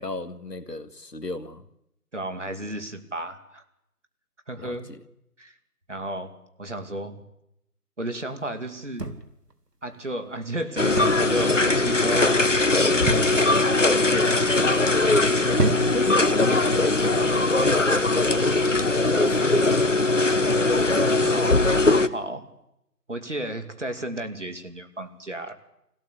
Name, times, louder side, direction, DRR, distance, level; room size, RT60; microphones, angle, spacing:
voice 1, 0.0-1.6 4.6-5.0 12.8-13.8 14.1-15.6 15.9-17.6 18.0-19.9, left 2 dB, 85° left, 1.9 m, -35 dB
voice 2, 2.1-3.6 4.5-4.9 5.4-5.6 5.9-7.2 8.0-9.1 9.8-12.7 13.8-14.1 21.0-22.5 23.1-25.5, right 1 dB, 50° right, 2.6 m, -33 dB
sound 1, 9.0-9.5 10.9-11.3 11.6-12.0 13.0-13.6 14.3-14.7 15.5-16.2 17.1-17.4, right 2 dB, 80° right, 2.5 m, -28 dB
sound 2, 10.8-22.1, left 2 dB, 50° left, 1.0 m, -20 dB
25.0 x 17.0 x 8.3 m
figure-of-eight pair, 175°, 47 cm